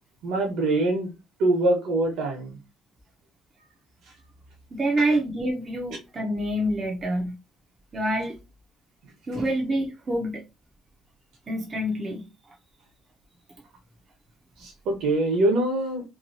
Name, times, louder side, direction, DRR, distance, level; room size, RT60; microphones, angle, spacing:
voice 1, 0.2-1.1 1.4-2.6 14.6-16.0, right 2 dB, 70° right, 1.1 m, -24 dB
voice 2, 4.7-7.3 7.9-8.4 9.3-10.4 11.5-12.3, right 1 dB, 25° right, 0.6 m, -27 dB
3.0 x 2.2 x 2.6 m
cardioid pair, 150°, 0 cm